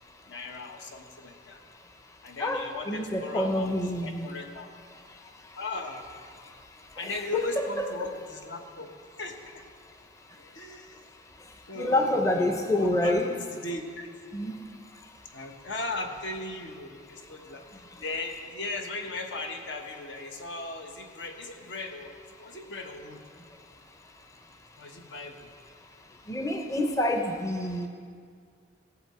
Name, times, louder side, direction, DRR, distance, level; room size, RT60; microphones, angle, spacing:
voice 1, 0.3-1.6 2.2-3.8 4.0-4.7 5.5-6.1 7.0-8.9 9.2-9.6 10.4-11.0 11.7-14.1 15.3-17.6 18.0-23.2 24.8-25.5, left 2 dB, 75° left, 4 dB, 1.2 m, -37 dB
voice 2, 2.4-4.3 7.0-7.4 7.8-7.9 11.8-13.3 14.3-14.6 26.3-27.9, left 1 dB, 15° left, 4 dB, 0.6 m, -27 dB
17.5 x 7.4 x 4.3 m, 2.1 s
head